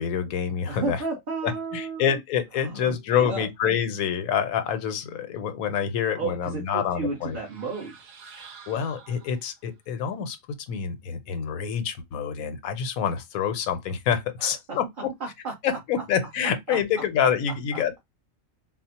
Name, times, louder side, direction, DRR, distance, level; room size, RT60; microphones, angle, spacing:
voice 1, 0.0-1.0 1.4-7.4 8.4-10.4 10.7-15.1 15.6-18.0, left 8 dB, 80° left, 1.1 m, -27 dB
voice 2, 0.7-2.2 2.6-3.5 6.2-6.6 6.9-7.9 14.4-14.8 15.2-15.5 16.7-16.8, right 4 dB, 45° right, 0.9 m, -32 dB
sound 1, 7.1-9.7, right 6 dB, 85° right, 1.3 m, -49 dB
4.1 x 2.0 x 2.8 m
omnidirectional pair, 1.5 m